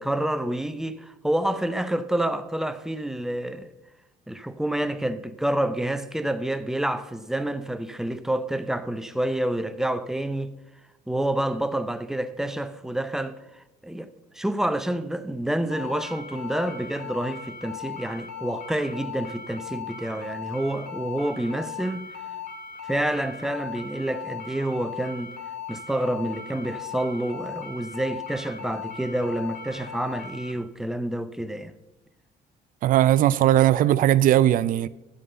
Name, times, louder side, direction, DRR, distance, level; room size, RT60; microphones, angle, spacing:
voice 1, 0.0-3.7 4.3-10.5 11.1-22.1 22.8-25.3 25.7-31.7, right 1 dB, 5° right, 0.5 m, -28 dB
sound 1, 15.7-30.5, left 6 dB, 60° left, 2.1 m, -38 dB
voice 2, 32.8-34.9, right 12 dB, 55° right, 0.4 m, -19 dB
11.5 x 3.9 x 7.6 m
cardioid pair, 110°, 17 cm